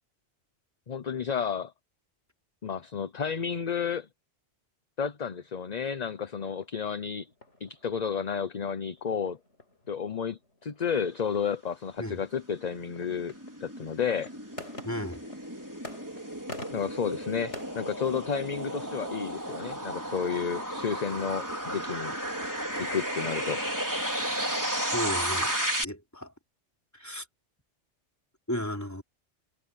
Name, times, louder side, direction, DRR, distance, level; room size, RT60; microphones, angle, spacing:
voice 1, 0.9-1.7 2.6-4.1 5.0-7.3 7.6-9.4 9.9-13.3 13.6-14.3 16.7-22.1 22.8-23.6, left 6 dB, 40° left, 0.8 m, -31 dB
sound 1, 6.0-18.9, left 2 dB, 70° left, 5.8 m, -49 dB
sound 2, 12.6-25.8, right 1 dB, 15° right, 4.2 m, -33 dB
voice 2, 14.8-15.2 24.8-25.5 25.8-26.3 26.9-27.3 28.5-29.0, equal, 15° left, 3.9 m, -34 dB
omnidirectional pair, 1.2 m